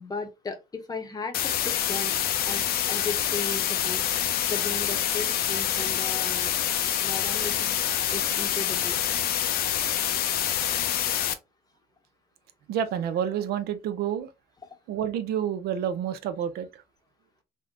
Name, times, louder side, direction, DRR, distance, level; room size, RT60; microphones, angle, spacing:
voice 1, 0.0-2.2 2.5-6.5 6.9-7.8 8.1-9.0, left 3 dB, 25° left, 0.7 m, -36 dB
sound 1, 1.3-11.3, left 10 dB, 65° left, 0.5 m, -26 dB
voice 2, 12.7-14.3 14.9-16.7, right 9 dB, 70° right, 0.5 m, -29 dB
3.6 x 2.1 x 2.3 m
cardioid pair, 110°, 17 cm